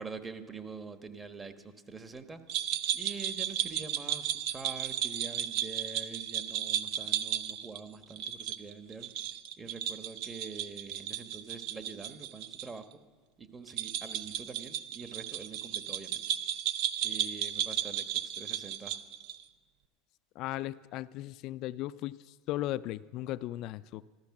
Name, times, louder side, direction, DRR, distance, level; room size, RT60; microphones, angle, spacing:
voice 1, 0.0-2.4 2.9-9.1 9.6-12.9 13.4-16.2 17.0-18.0 18.4-18.9, right 4 dB, 20° right, 8 dB, 1.2 m, -45 dB
sound 1, 2.5-12.7 12.9-13.0 13.7-19.4, right 10 dB, 65° right, 0.7 m, -34 dB
voice 2, 20.4-22.2 22.5-24.0, left 15 dB, 55° left, 14 dB, 0.4 m, -36 dB
14.0 x 13.5 x 6.0 m, 1.4 s
supercardioid pair, 105°, 0 cm